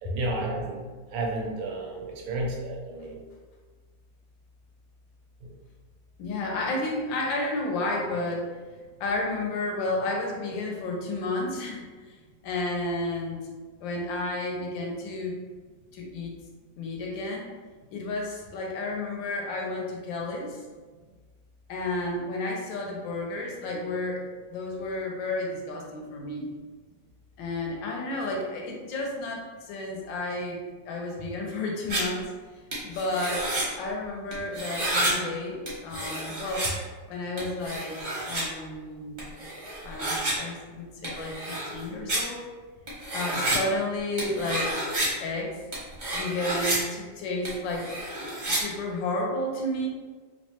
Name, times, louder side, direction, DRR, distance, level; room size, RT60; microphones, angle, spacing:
voice 1, 0.0-3.2 5.4-5.5, right 2 dB, 80° right, 0 dB, 1.2 m, -32 dB
voice 2, 6.2-8.4 9.0-12.2 12.4-13.4 13.8-15.4 15.9-16.3 16.8-17.5 17.9-20.6 21.7-26.5 27.4-32.3 32.5-33.5 33.8-35.6 35.8-36.7 37.1-38.0 38.2-39.3 39.8-42.4 43.1-44.8 45.2-45.6 46.1-47.9 48.5-49.9, left 2 dB, 80° left, 0 dB, 1.3 m, -32 dB
sound 1, 31.9-32.0 32.7-33.6 34.3-35.1 35.7-36.7 37.4-38.4 39.2-40.3 41.0-41.8 42.1-42.2 42.9-43.6 44.2-45.1 45.7-46.8 47.4-48.6, right 1 dB, 50° right, 0.5 m, -30 dB
3.1 x 2.0 x 2.8 m, 1.4 s
omnidirectional pair, 2.1 m